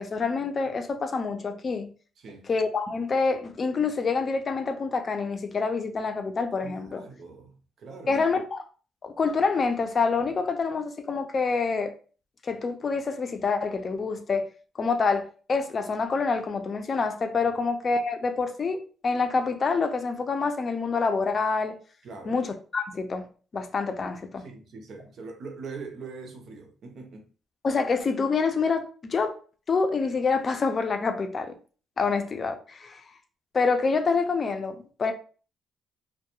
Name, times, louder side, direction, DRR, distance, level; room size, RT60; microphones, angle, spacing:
voice 1, 0.0-1.9 2.5-7.0 8.1-8.6 9.0-11.9 12.4-14.5 14.8-21.8 22.3-23.3 23.5-24.5 27.6-29.4 29.7-31.5 32.0-33.0 33.5-35.1, left 4 dB, 40° left, 0.4 m, -27 dB
voice 2, 2.2-2.5 6.6-8.2 17.4-17.6 22.0-22.4 24.4-27.3, right 4 dB, 65° right, 0.7 m, -42 dB
2.2 x 2.2 x 2.9 m
cardioid pair, 90°, 0 cm